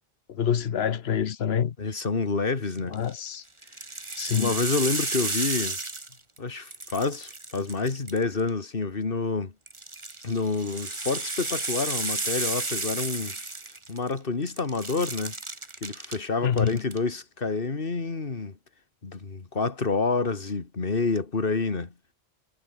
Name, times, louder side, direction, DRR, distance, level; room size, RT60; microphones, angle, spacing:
voice 1, 0.3-1.7 2.9-3.4 4.2-4.6 16.4-16.8, left 8 dB, 80° left, 1.2 m, -26 dB
voice 2, 1.8-3.0 4.4-5.8 6.4-9.5 10.2-13.4 13.9-15.4 15.8-18.6 19.0-21.9, left 4 dB, 60° left, 2.2 m, -28 dB
sound 1, 2.8-3.1 3.6-6.4 6.7-8.5 9.7-14.2 14.5-16.2 16.5-17.0, right 2 dB, 30° right, 1.7 m, -33 dB
omnidirectional pair, 1.0 m